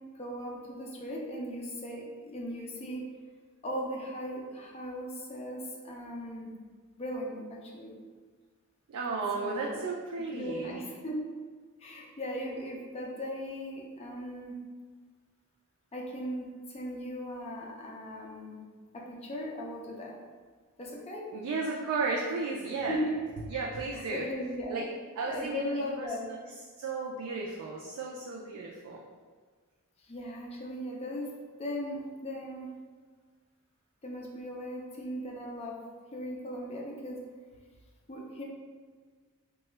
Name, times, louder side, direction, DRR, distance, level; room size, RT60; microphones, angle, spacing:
voice 1, 0.1-3.0 3.6-6.5 7.0-7.9 9.4-9.8 10.3-11.2 11.8-14.6 15.9-18.6 18.9-20.1 20.8-21.3 22.9-23.1 23.5-23.6 23.9-24.9 25.3-26.3 30.0-31.3 31.6-32.7 34.0-35.8 36.1-37.2 38.1-38.4, equal, 30° left, -2 dB, 0.5 m, -38 dB
voice 2, 8.9-10.8 21.3-23.0 23.5-24.3 24.7-24.8 25.2-26.4 26.8-29.0, right 4 dB, 85° right, -3 dB, 0.3 m, -34 dB
2.8 x 2.2 x 3.2 m, 1.5 s
head